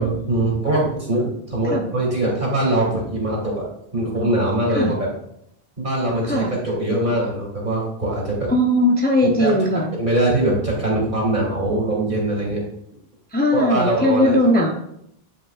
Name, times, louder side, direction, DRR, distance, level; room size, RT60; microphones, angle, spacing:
voice 1, 0.0-3.7 3.9-5.1 5.8-8.5 9.4-9.5 10.0-12.6 13.5-14.7, right 1 dB, 50° right, -4 dB, 3.0 m, -22 dB
voice 2, 8.5-9.9 13.3-14.7, left 1 dB, 10° left, 0 dB, 0.6 m, -18 dB
11.0 x 5.2 x 2.4 m, 0.75 s
omnidirectional pair, 1.0 m